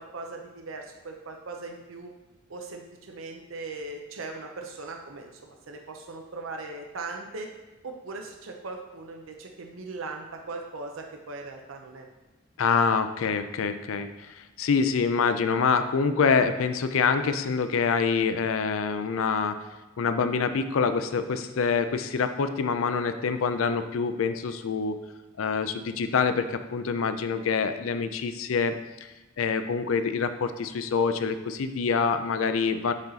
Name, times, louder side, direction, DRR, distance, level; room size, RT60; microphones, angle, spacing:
voice 1, 0.0-2.1 2.5-7.5 7.8-12.1, right 3 dB, 80° right, 3 dB, 0.7 m, -39 dB
voice 2, 12.6-14.1 14.4-19.6 20.0-25.0 25.4-28.7 29.4-32.9, left 5 dB, 90° left, 10 dB, 0.4 m, -26 dB
7.1 x 4.0 x 4.0 m, 1.1 s
head